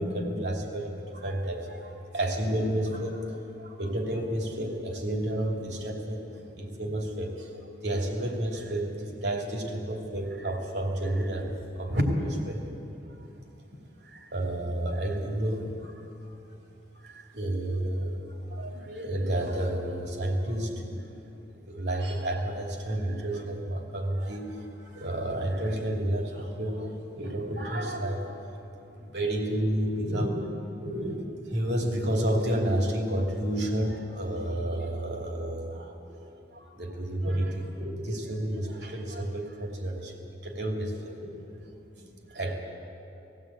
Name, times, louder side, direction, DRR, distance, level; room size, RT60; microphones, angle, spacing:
voice 1, 0.0-6.2 6.5-7.5 7.8-12.6 13.2-13.3 14.0-15.9 17.0-28.4 29.0-36.2 36.5-41.3 42.0-42.6, right 1 dB, 70° right, 1 dB, 2.8 m, -31 dB
19.0 x 16.5 x 8.7 m, 2.9 s
head